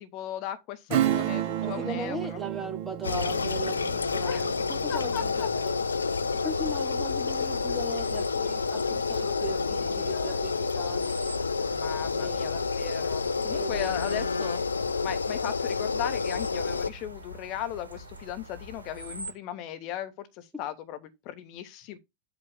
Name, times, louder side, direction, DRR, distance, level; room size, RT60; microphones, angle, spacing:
voice 1, 0.0-2.4 4.2-4.4 4.9-5.5 9.2-10.6 11.6-14.6 15.0-22.0, left 11 dB, 40° left, 1.2 m, -37 dB
Acoustic guitar / Strum, 0.9-7.1 7.5-7.6, right 12 dB, 45° right, 0.7 m, -32 dB
voice 2, 1.6-5.8 6.4-11.3 12.1-12.7 13.4-13.9 14.4-14.5, right 2 dB, 5° right, 1.9 m, -39 dB
sound 1, 3.0-16.9, left 4 dB, 75° left, 0.4 m, -29 dB
sound 2, 6.4-19.3, equal, 80° right, 1.4 m, -45 dB
8.3 x 3.0 x 6.3 m
figure-of-eight pair, 90°, 0 cm